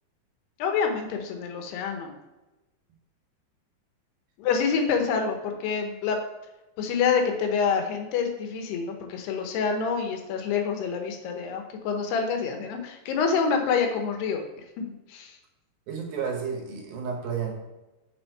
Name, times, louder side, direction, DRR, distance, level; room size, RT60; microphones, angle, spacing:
voice 1, 0.6-2.1 4.4-6.2 6.8-14.4 14.8-14.9 15.1-15.4, left 6 dB, 80° left, 4 dB, 2.9 m, -27 dB
voice 2, 15.9-17.5, right 6 dB, 70° right, 1 dB, 2.7 m, -31 dB
7.0 x 6.2 x 4.6 m, 1.1 s
omnidirectional pair, 4.8 m